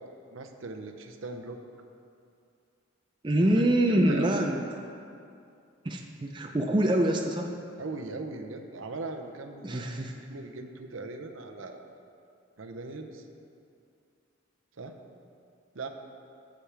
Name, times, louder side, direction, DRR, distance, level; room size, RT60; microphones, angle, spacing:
voice 1, 0.0-1.6 3.9-4.4 7.8-11.9 12.6-13.3 14.8-15.0 15.7-15.9, right 3 dB, 75° right, 5 dB, 0.8 m, -40 dB
voice 2, 3.2-4.6 5.8-7.5 9.6-10.1, right 1 dB, 25° right, 2 dB, 0.5 m, -25 dB
15.0 x 7.2 x 3.4 m, 2.5 s
head